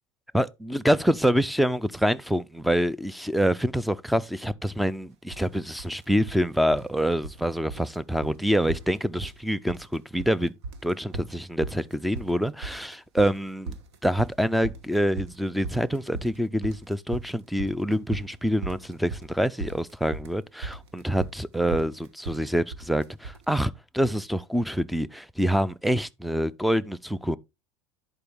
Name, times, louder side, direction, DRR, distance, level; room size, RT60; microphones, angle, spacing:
voice 1, 0.3-10.5 10.8-13.7 14.0-27.4, equal, ahead, 0.3 m, -26 dB
sound 1, 5.3-5.5 5.8-6.4 6.7-7.4 7.7-8.0 8.2-8.4 8.7-9.4 9.7-10.3 10.6-23.4, right 3 dB, 85° right, 1.3 m, -38 dB
10.5 x 4.6 x 3.4 m
supercardioid pair, 125°, 14 cm